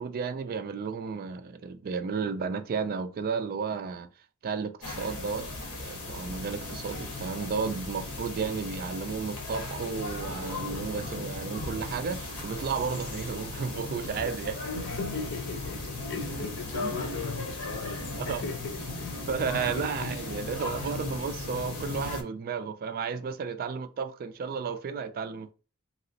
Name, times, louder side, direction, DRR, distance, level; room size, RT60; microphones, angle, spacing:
voice 1, 0.0-4.1 4.4-14.6 16.7-16.9 18.2-18.4 19.3-25.5, right 5 dB, 40° right, 0.3 m, -33 dB
sound 1, 4.8-22.2, left 2 dB, 80° left, 1.0 m, -37 dB
voice 2, 14.6-19.3 19.6-20.2 20.5-20.6, left 4 dB, 55° left, 0.6 m, -37 dB
2.9 x 2.9 x 2.7 m
head